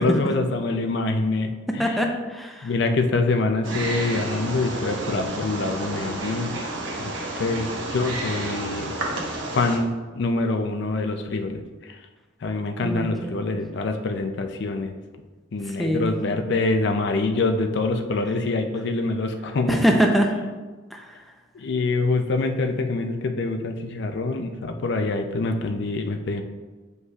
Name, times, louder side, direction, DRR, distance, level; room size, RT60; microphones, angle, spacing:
voice 1, 0.0-1.5 1.8-2.0 2.6-6.6 7.0-8.9 9.5-12.0 12.4-14.9 15.5-19.8 21.5-26.4, left 3 dB, 60° left, 6 dB, 0.4 m, -25 dB
voice 2, 1.8-2.7 12.8-13.4 15.7-16.2 19.7-20.3 20.9-21.2, equal, ahead, 1 dB, 0.6 m, -23 dB
Wild animals, 3.6-9.8, right 2 dB, 70° right, 1.1 m, -31 dB
7.9 x 5.4 x 2.4 m, 1.3 s
head